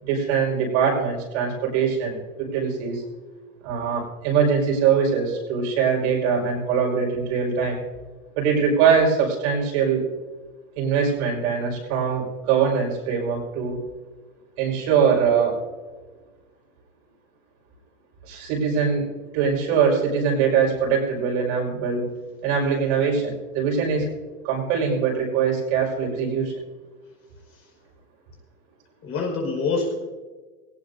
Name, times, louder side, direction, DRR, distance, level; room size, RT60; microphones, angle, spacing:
voice 1, 0.0-3.0 3.6-7.8 8.4-10.0 10.8-13.8 14.6-15.6 18.3-19.1 19.3-22.1 22.4-24.1 24.4-26.5, right 6 dB, 50° right, -1 dB, 5.3 m, -22 dB
voice 2, 29.0-30.0, left 4 dB, 30° left, 0 dB, 5.3 m, -26 dB
21.5 x 18.0 x 2.7 m, 1.3 s
hypercardioid pair, 125°, 44 cm